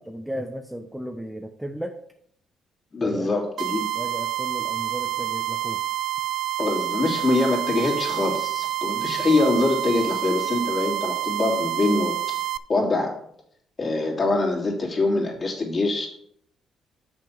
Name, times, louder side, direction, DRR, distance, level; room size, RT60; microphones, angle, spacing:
voice 1, 0.1-2.0 3.0-3.3 3.9-5.8, equal, 5° right, 5 dB, 0.7 m, -34 dB
voice 2, 2.9-3.9 6.6-12.2 12.7-13.2 13.8-16.1, left 2 dB, 40° left, -1 dB, 2.9 m, -24 dB
sound 1, 3.6-12.6, right 14 dB, 70° right, 0.3 m, -28 dB
6.9 x 6.1 x 5.8 m, 0.67 s
cardioid pair, 90°, 0 cm